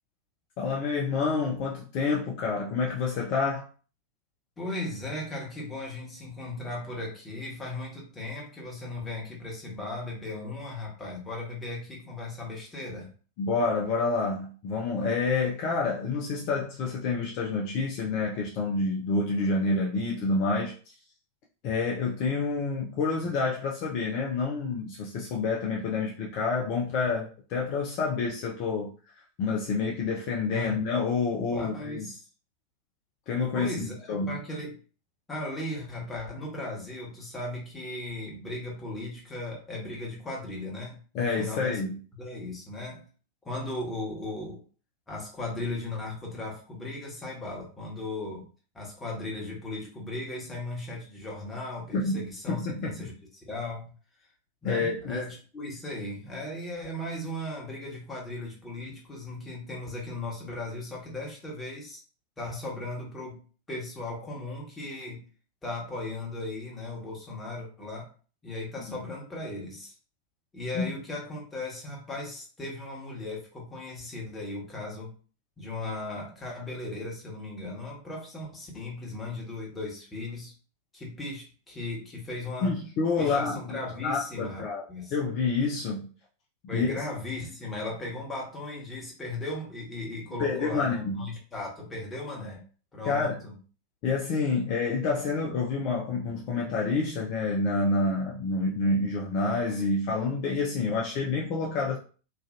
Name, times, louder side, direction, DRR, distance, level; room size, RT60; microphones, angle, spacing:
voice 1, 0.6-3.7 13.4-20.7 21.6-28.9 29.4-32.1 33.3-34.4 41.1-42.0 51.9-52.2 52.5-53.1 54.6-55.2 70.7-70.9 82.6-83.6 84.0-84.8 85.1-86.1 86.7-86.9 90.4-91.3 93.0-93.4 94.0-102.0, left 4 dB, 45° left, 0.5 m, -28 dB
voice 2, 4.6-13.1 30.5-30.8 31.5-32.3 33.5-34.8 35.3-41.8 42.2-43.0 43.4-44.6 45.1-48.5 48.7-53.1 53.4-53.9 54.6-62.0 62.4-65.2 65.6-68.1 68.4-69.9 70.5-75.1 75.6-80.5 80.9-82.8 83.2-85.1 86.7-92.6 92.9-93.5, left 2 dB, 15° left, 1.3 m, -37 dB
3.1 x 2.5 x 2.6 m
figure-of-eight pair, 90°, 0 cm